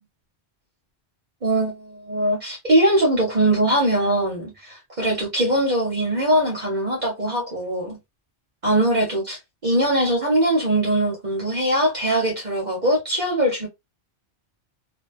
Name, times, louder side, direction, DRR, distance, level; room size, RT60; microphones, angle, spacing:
voice 1, 1.4-8.0 8.6-13.7, right 1 dB, 45° right, 1.0 m, -21 dB
2.8 x 2.2 x 2.5 m
omnidirectional pair, 1.1 m